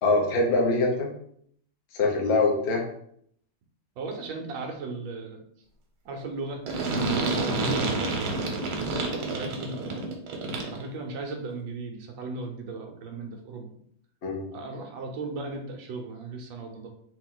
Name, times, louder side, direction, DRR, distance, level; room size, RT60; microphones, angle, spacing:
voice 1, 0.0-1.1 1.9-2.8 14.2-14.5, left 3 dB, 45° left, -1 dB, 0.9 m, -23 dB
voice 2, 4.0-5.4 6.0-6.6 7.1-8.4 8.9-10.1 10.7-13.8 14.5-16.9, right 3 dB, 75° right, 2 dB, 1.5 m, -36 dB
sound 1, 6.7-10.9, right 3 dB, 90° right, 1.7 m, -28 dB
3.7 x 3.0 x 3.8 m, 0.66 s
omnidirectional pair, 2.2 m